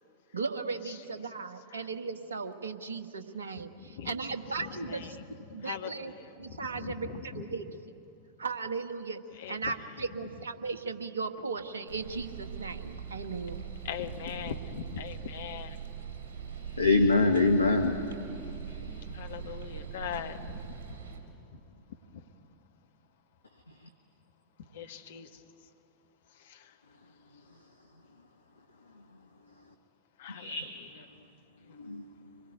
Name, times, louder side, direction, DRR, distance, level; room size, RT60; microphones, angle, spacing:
voice 1, 0.3-5.2 5.5-6.1 6.4-7.6 8.4-9.2 9.5-13.6, right 4 dB, 70° right, 8 dB, 1.3 m, -36 dB
voice 2, 3.8-7.4 9.4-9.7 13.8-15.8 18.8-21.0 21.5-21.6 22.1-22.2 24.6-25.4 26.4-26.7 30.2-30.6 30.9-31.0 31.7-31.8, left 8 dB, 60° left, 6 dB, 1.4 m, -41 dB
sound 1, 11.9-21.2, right 7 dB, 55° right, 3.6 m, -42 dB
voice 3, 16.8-18.0 18.7-18.8 30.3-30.8 31.7-32.0, left 3 dB, 80° left, 5 dB, 1.2 m, -24 dB
25.5 x 21.5 x 9.1 m, 2.7 s
figure-of-eight pair, 90°, 0 cm